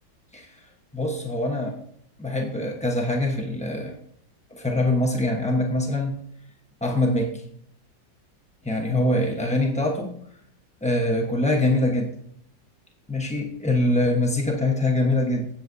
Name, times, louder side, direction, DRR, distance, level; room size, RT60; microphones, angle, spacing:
voice 1, 0.3-0.6 0.9-1.8 2.2-4.0 4.5-6.2 6.8-7.4 8.6-10.2 10.8-12.1 13.1-15.5, left 1 dB, 10° left, 1 dB, 0.4 m, -24 dB
16.0 x 7.7 x 2.7 m, 0.69 s
omnidirectional pair, 2.0 m